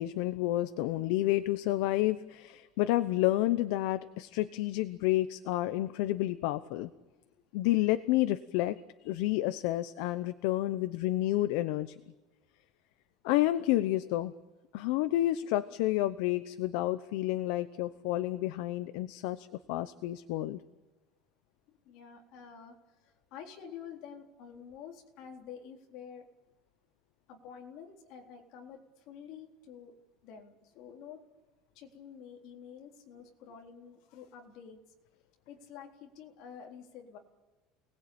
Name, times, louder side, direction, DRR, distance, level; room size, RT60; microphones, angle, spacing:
voice 1, 0.0-6.9 7.5-8.8 9.0-12.0 13.2-14.3 14.7-20.6, left 15 dB, 65° left, 12 dB, 0.9 m, -30 dB
voice 2, 21.9-22.8 23.0-26.3 27.3-30.0 30.2-31.2 31.7-34.8 35.5-37.2, left 7 dB, 50° left, 1 dB, 3.8 m, -49 dB
29.0 x 20.0 x 8.8 m, 1.2 s
cardioid pair, 175°, 0 cm